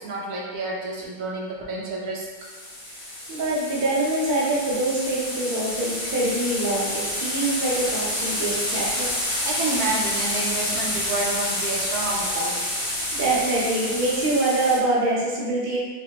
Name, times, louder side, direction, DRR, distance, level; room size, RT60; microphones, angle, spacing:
voice 1, 0.0-2.3 9.4-12.6, right 2 dB, 70° right, -4 dB, 1.1 m, -29 dB
sound 1, 2.4-14.8, left 1 dB, 60° left, 0.3 m, -28 dB
voice 2, 3.3-9.1 12.3-12.4 13.1-15.8, right 2 dB, 45° right, -6 dB, 0.7 m, -24 dB
5.0 x 2.1 x 2.9 m, 1.4 s
omnidirectional pair, 1.8 m